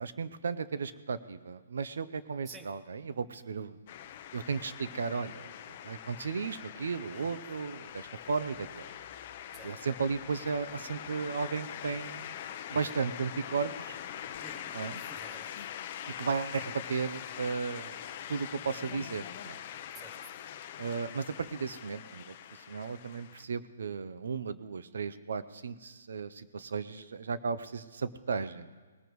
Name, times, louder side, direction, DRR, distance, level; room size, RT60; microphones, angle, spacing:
voice 1, 0.0-3.8 4.3-8.9 9.6-12.3 12.7-14.0 14.7-15.0 16.2-17.9 18.3-19.6 20.8-22.3 22.7-28.7, right 5 dB, 75° right, 14 dB, 0.6 m, -35 dB
sound 1, 3.9-23.4, left 10 dB, 35° left, 0.7 m, -43 dB
voice 2, 7.1-7.4 9.5-9.8 14.4-15.7 19.9-20.3, right 3 dB, 10° right, 7 dB, 0.8 m, -52 dB
20.0 x 13.5 x 3.1 m, 1.4 s
hypercardioid pair, 165°, 0 cm